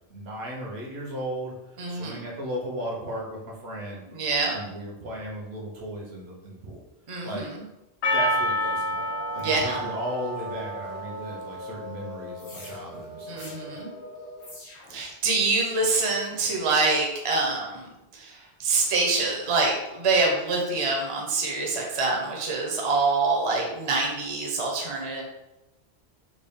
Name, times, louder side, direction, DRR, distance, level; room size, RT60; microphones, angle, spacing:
voice 1, 0.1-1.5 1.9-4.0 4.5-6.8 7.2-7.5 8.1-9.0 9.3-13.8, equal, 70° right, -1 dB, 1.1 m, -36 dB
voice 2, 1.8-2.2 4.1-4.6 7.1-7.6 9.4-9.9 13.3-13.9 14.9-25.2, right 3 dB, 35° right, -1 dB, 0.6 m, -26 dB
Percussion, 8.0-12.3, equal, 75° left, 0.9 m, -29 dB
sound 1, 8.9-14.5, left 1 dB, 45° left, 0.5 m, -42 dB
sound 2, 12.4-12.8 13.4-13.6 14.4-15.0 15.9-16.3, left 2 dB, 90° left, 1.3 m, -45 dB
3.7 x 2.3 x 3.5 m, 0.95 s
omnidirectional pair, 1.1 m